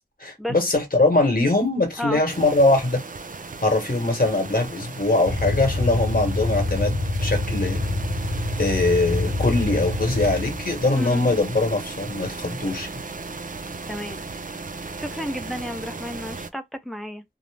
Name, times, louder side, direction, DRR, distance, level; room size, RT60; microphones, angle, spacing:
voice 1, 0.2-3.0 3.6-7.8 8.6-12.9, left 2 dB, 55° left, 1.1 m, -22 dB
sound 1, 2.3-16.5, right 3 dB, 50° right, 0.4 m, -36 dB
sound 2, 5.3-10.8, left 2 dB, 75° left, 0.7 m, -26 dB
voice 2, 13.9-14.2 15.0-17.2, left 1 dB, ahead, 0.6 m, -32 dB
2.6 x 2.0 x 3.2 m
wide cardioid pair, 50°, 17 cm